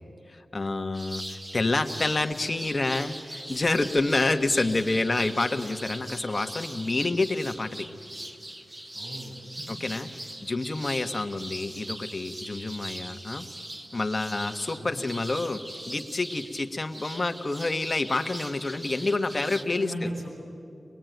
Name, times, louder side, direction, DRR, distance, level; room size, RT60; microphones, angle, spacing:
voice 1, 0.3-7.9 9.7-10.1 10.4-13.5 13.9-20.1, left 2 dB, 35° left, 7 dB, 1.4 m, -28 dB
sound 1, 0.9-19.6, right 1 dB, 25° right, 1.5 m, -41 dB
voice 2, 8.9-9.8 14.7-15.0 19.3-20.3, equal, 70° right, -2 dB, 7.5 m, -38 dB
24.0 x 20.0 x 9.3 m, 2.6 s
cardioid pair, 60°, 0 cm